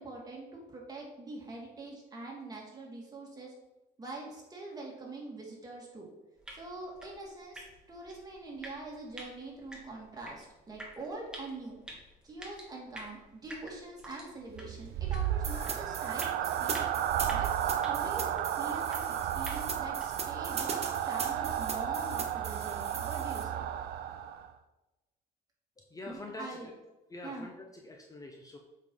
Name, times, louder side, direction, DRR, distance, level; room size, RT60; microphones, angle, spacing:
voice 1, 0.0-3.5 4.0-6.1 6.5-11.8 12.2-16.8 17.3-20.7 21.0-23.7 26.1-26.7 27.2-27.5, right 2 dB, 20° right, -2 dB, 2.4 m, -44 dB
sound 1, 6.4-20.3, equal, 5° right, 1.9 m, -50 dB
sound 2, 14.5-24.5, right 10 dB, 70° right, 0.5 m, -33 dB
sound 3, 15.4-23.4, right 5 dB, 40° right, 1.1 m, -40 dB
voice 2, 25.8-26.7 27.1-28.6, left 2 dB, 20° left, 1 dB, 0.9 m, -45 dB
7.2 x 5.4 x 3.9 m, 1.0 s
cardioid pair, 110°, 17 cm